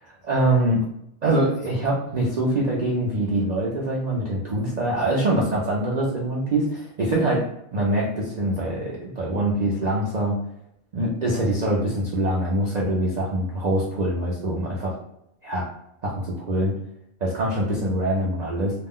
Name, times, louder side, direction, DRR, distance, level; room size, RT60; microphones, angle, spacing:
voice 1, 0.2-0.8 1.2-7.4 7.7-10.4 10.9-15.0 15.4-15.7 16.0-16.7 17.2-18.7, right 1 dB, 70° right, -4 dB, 0.4 m, -24 dB
2.4 x 2.1 x 3.5 m, 0.78 s
omnidirectional pair, 1.4 m